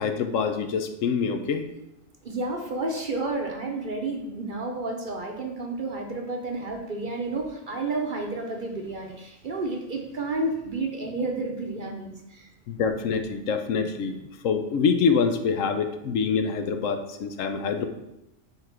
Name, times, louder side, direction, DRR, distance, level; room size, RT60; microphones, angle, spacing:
voice 1, 0.0-1.6 12.7-17.9, left 5 dB, 75° left, 7 dB, 1.0 m, -25 dB
voice 2, 2.2-12.5, right 2 dB, 45° right, 2 dB, 0.8 m, -31 dB
5.7 x 3.8 x 5.8 m, 0.89 s
omnidirectional pair, 1.4 m